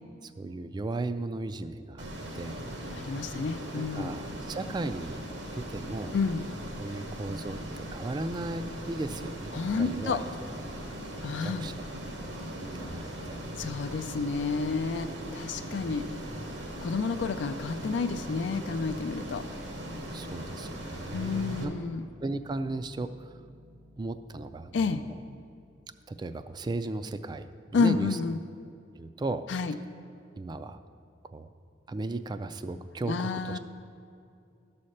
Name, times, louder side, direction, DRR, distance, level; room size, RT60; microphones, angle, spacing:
voice 1, 0.2-2.0 2.3-2.6 3.7-5.2 5.5-6.2 6.8-10.3 11.4-11.7 12.6-13.4 15.5-16.2 20.1-21.7 22.2-23.3 24.0-25.2 26.1-27.5 27.7-28.2 28.9-29.4 30.4-30.8 31.2-31.5 31.9-33.6, right 2 dB, 25° right, 11 dB, 0.3 m, -36 dB
Ocean, 2.0-21.6, right 1 dB, 70° right, 1.2 m, -39 dB
voice 2, 2.9-4.1 6.1-6.4 9.5-10.2 11.2-11.7 13.6-16.0 16.8-19.4 21.1-22.0 24.7-25.0 27.7-28.4 29.5-29.7 33.1-33.6, left 4 dB, 75° left, 8 dB, 0.4 m, -30 dB
sound 1, 21.1-27.9, equal, 50° right, 0.8 m, -55 dB
12.5 x 4.3 x 6.5 m, 2.4 s
head